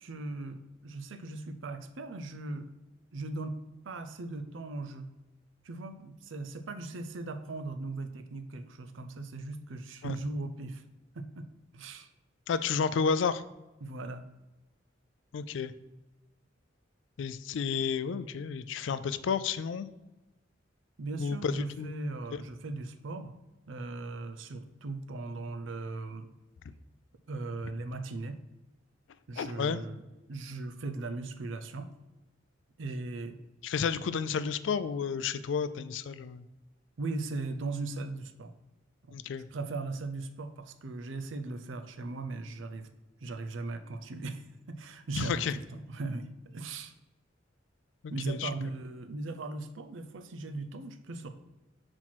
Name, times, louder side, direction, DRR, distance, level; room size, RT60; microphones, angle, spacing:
voice 1, 0.0-2.7 3.1-3.6 3.8-5.1 5.6-10.8 11.1-12.1 13.8-14.3 21.0-23.4 23.7-26.3 27.3-28.4 29.3-30.0 30.3-31.9 32.8-33.4 37.0-38.5 39.1-39.2 39.5-42.9 43.2-46.9 48.1-51.3, right 3 dB, 70° right, 9 dB, 0.6 m, -38 dB
voice 2, 12.5-13.4 15.3-15.7 17.2-19.9 21.2-21.9 22.3-22.4 29.4-29.8 33.6-36.4 39.1-39.5 45.1-45.5 48.0-48.5, left 6 dB, 65° left, 14 dB, 0.3 m, -31 dB
5.9 x 4.4 x 4.4 m, 1.1 s
head